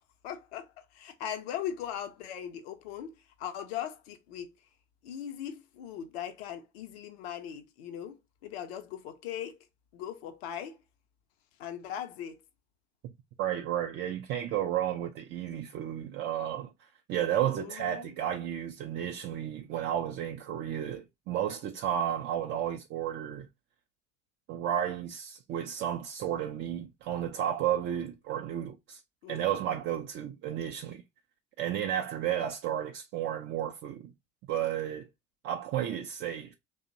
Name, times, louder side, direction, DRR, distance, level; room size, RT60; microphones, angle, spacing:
voice 1, 0.2-0.7 0.9-3.1 3.4-4.5 5.0-8.2 8.4-9.6 9.9-10.8 11.6-12.4 17.6-18.1 29.2-29.6, left 9 dB, 65° left, 0.6 m, -39 dB
voice 2, 13.4-23.5 24.5-29.0 29.3-31.0 31.6-34.1 34.5-35.1 35.4-36.5, right 10 dB, 35° right, 0.4 m, -32 dB
2.8 x 2.1 x 2.5 m
hypercardioid pair, 70°, 33 cm